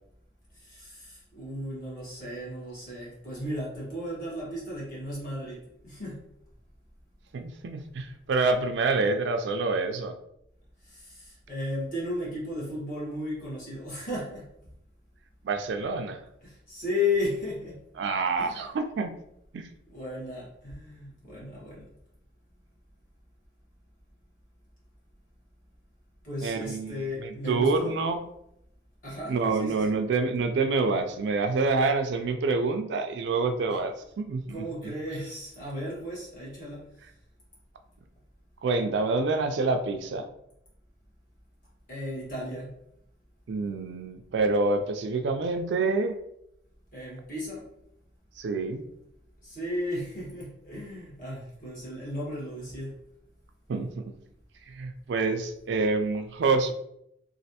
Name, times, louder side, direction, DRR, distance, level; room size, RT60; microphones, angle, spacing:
voice 1, 0.6-6.3 10.8-14.4 16.4-17.8 18.4-18.7 19.9-21.8 26.2-28.0 29.0-29.8 33.7-33.8 34.5-36.8 41.9-42.7 46.9-47.6 49.4-52.9, left 2 dB, 45° left, -6 dB, 1.5 m, -35 dB
voice 2, 7.3-10.2 15.4-16.2 18.0-19.2 19.5-19.7 26.4-28.2 29.3-34.7 38.6-40.3 43.5-46.2 48.4-48.8 53.7-54.1 54.7-56.7, right 3 dB, 65° right, 7 dB, 0.3 m, -27 dB
3.1 x 2.5 x 2.8 m, 0.78 s
head